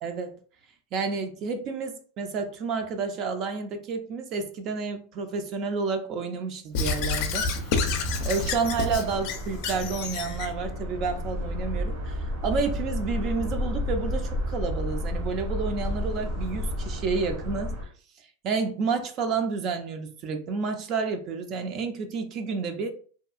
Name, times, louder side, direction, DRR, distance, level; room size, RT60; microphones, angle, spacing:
voice 1, 0.0-0.3 0.9-7.5 8.2-17.7 18.4-22.9, right 5 dB, 45° right, 7 dB, 0.4 m, -30 dB
Squeak / Writing, 6.7-10.5, left 4 dB, 55° left, 0.4 m, -28 dB
sound 1, 6.8-17.8, left 1 dB, 65° right, 1.0 m, -32 dB
2.6 x 2.3 x 2.4 m, 0.43 s
supercardioid pair, 125°, 0 cm